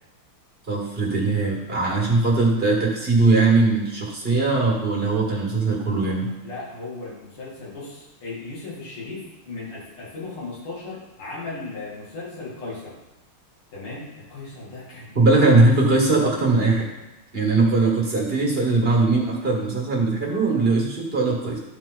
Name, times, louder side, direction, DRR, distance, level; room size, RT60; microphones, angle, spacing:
voice 1, 0.7-6.3 15.2-16.9 17.3-21.6, right 3 dB, 30° right, -2 dB, 1.8 m, -20 dB
voice 2, 6.4-12.9 13.7-15.6, left 3 dB, 85° left, -7 dB, 3.2 m, -36 dB
13.5 x 4.7 x 3.9 m, 0.98 s
omnidirectional pair, 2.3 m